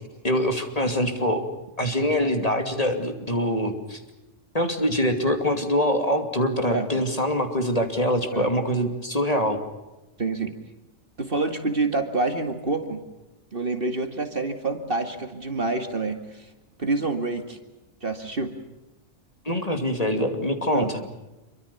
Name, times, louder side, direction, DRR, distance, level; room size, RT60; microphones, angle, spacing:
voice 1, 0.2-1.5 1.8-4.0 4.5-9.6 19.4-20.8, equal, 30° left, 5 dB, 2.8 m, -24 dB
voice 2, 10.2-10.6 11.2-13.0 13.5-16.5 16.8-17.6 18.0-18.6 20.6-20.9, right 3 dB, 45° right, 7 dB, 2.4 m, -27 dB
27.0 x 24.0 x 7.1 m, 1.0 s
omnidirectional pair, 1.3 m